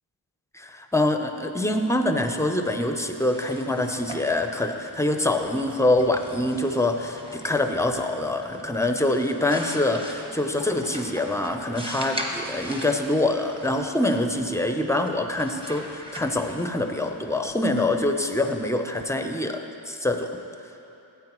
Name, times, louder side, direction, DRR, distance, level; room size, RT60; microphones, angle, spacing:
voice 1, 0.5-20.3, left 1 dB, 5° left, 5 dB, 0.6 m, -25 dB
sound 1, 3.0-18.7, equal, 10° right, 1.1 m, -41 dB
14.5 x 8.4 x 3.1 m, 3.0 s
wide cardioid pair, 50°, 48 cm